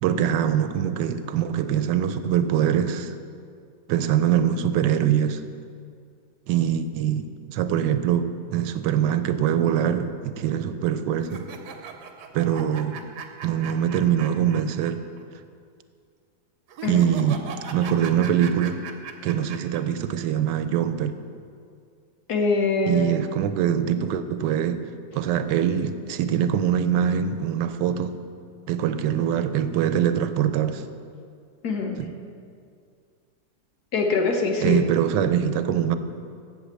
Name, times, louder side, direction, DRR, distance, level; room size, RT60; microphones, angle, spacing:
voice 1, 0.0-3.1 3.9-5.4 6.5-11.5 12.3-13.0 13.4-15.0 16.9-17.4 17.7-18.8 19.2-21.2 22.9-24.8 25.1-28.2 28.7-30.8 32.0-32.1 34.6-36.0, right 9 dB, 90° right, 11 dB, 1.3 m, -23 dB
sound 1, 11.2-14.9 15.2-15.3 16.7-19.8, right 6 dB, 70° right, 1.3 m, -38 dB
voice 2, 22.3-23.1 31.6-32.0 33.9-34.8, left 4 dB, 65° left, 3 dB, 1.5 m, -23 dB
8.3 x 7.1 x 7.5 m, 2.3 s
omnidirectional pair, 1.8 m